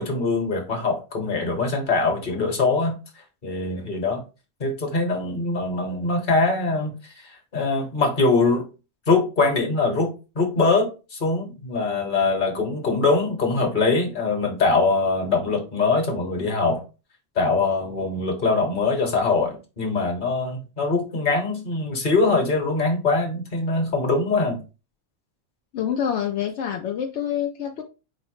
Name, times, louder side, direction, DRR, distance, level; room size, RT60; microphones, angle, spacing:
voice 1, 0.0-3.0 3.4-4.2 4.6-8.7 9.1-16.8 17.3-24.6, left 3 dB, 45° left, 1.3 m, -23 dB
voice 2, 25.7-27.8, left 9 dB, 80° left, 0.9 m, -26 dB
4.8 x 2.0 x 4.6 m
omnidirectional pair, 1.2 m